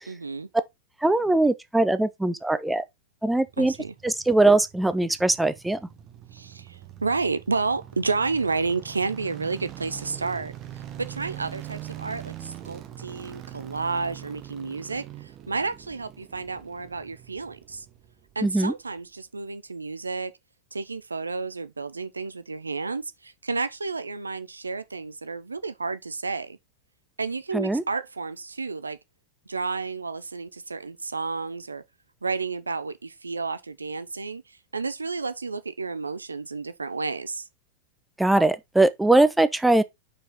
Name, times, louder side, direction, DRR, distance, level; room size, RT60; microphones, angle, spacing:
voice 1, 0.1-0.5 3.6-3.9 6.3-10.5 11.0-17.9 18.4-20.3 20.7-26.6 27.2-29.0 29.5-31.8 32.2-37.5, right 4 dB, 80° right, 0.5 m, -31 dB
voice 2, 1.0-2.8 3.2-3.7 4.0-5.8 18.4-18.7 27.5-27.8 38.2-39.8, right 2 dB, 5° right, 0.6 m, -21 dB
sound 1, 3.3-18.5 18.8-18.9, right 12 dB, 35° right, 1.1 m, -43 dB
5.4 x 4.6 x 4.0 m
figure-of-eight pair, 90°, 0 cm